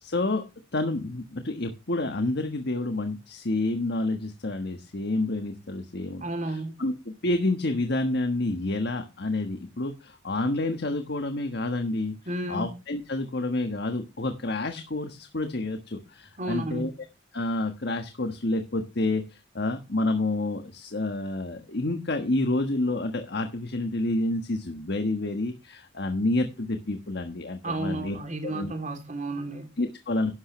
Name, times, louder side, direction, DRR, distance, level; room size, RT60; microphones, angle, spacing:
voice 1, 0.0-0.4 0.7-12.1 12.5-16.9 17.3-28.2 28.4-28.7 29.8-30.3, left 2 dB, 60° left, 1.4 m, -29 dB
voice 2, 6.2-6.8 12.3-12.7 16.4-16.9 27.6-29.8, right 2 dB, 40° right, 3.0 m, -32 dB
12.0 x 11.5 x 3.2 m
head